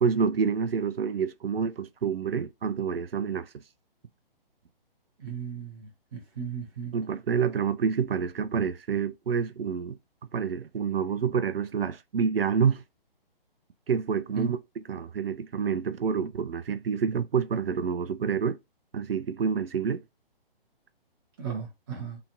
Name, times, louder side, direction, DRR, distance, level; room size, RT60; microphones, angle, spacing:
voice 1, 0.0-3.5 6.9-10.0 10.3-12.8 13.9-14.6 14.9-18.6 18.9-20.0, right 6 dB, 75° right, 0.4 m, -28 dB
voice 2, 5.2-6.9 14.3-14.5 21.4-22.2, right 6 dB, 25° right, 0.6 m, -36 dB
2.9 x 2.4 x 2.6 m
figure-of-eight pair, 135°, 29 cm